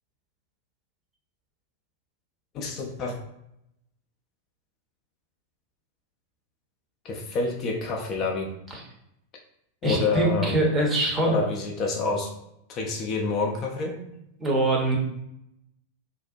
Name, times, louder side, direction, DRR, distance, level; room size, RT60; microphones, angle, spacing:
voice 1, 2.5-3.1 7.0-8.5 9.8-10.5 11.2-12.3 12.7-14.0, left 3 dB, 35° left, 1 dB, 0.4 m, -28 dB
voice 2, 9.8-11.4 14.4-15.0, right 1 dB, 20° right, -1 dB, 0.7 m, -23 dB
2.5 x 2.0 x 2.5 m, 0.80 s
figure-of-eight pair, 90°, 0 cm